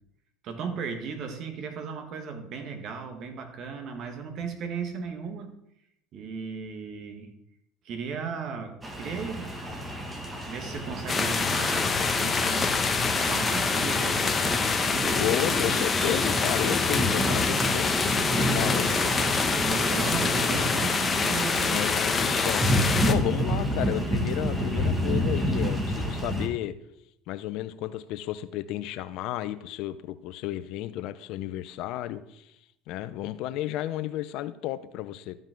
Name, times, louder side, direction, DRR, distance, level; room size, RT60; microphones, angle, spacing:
voice 1, 0.4-5.5 6.1-7.3 7.8-9.5 10.5-12.9 13.2-14.9 19.7-21.8, right 5 dB, 55° right, 5 dB, 1.7 m, -36 dB
sound 1, 8.8-26.5, equal, 15° right, 1.8 m, -30 dB
sound 2, 11.1-23.1, left 4 dB, 25° left, 1.0 m, -26 dB
voice 2, 15.2-18.9 21.7-22.7 23.1-26.7 27.3-32.5 32.9-35.4, left 13 dB, 65° left, 13 dB, 0.6 m, -32 dB
13.5 x 5.4 x 3.8 m, 0.78 s
supercardioid pair, 90°, 0 cm